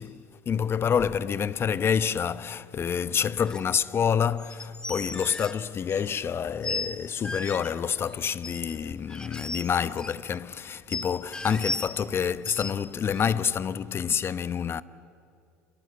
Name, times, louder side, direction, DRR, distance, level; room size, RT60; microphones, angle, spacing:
voice 1, 0.0-14.8, left 7 dB, 30° left, 0.9 m, -28 dB
sound 1, 3.5-3.7 4.4-6.1 6.6-6.9 7.2-7.7 8.4-8.7 9.1-10.1 10.9-12.1 12.5-12.7 13.1-13.2, left 2 dB, 10° left, 2.0 m, -35 dB
28.5 x 22.0 x 8.4 m
hypercardioid pair, 75°, 7 cm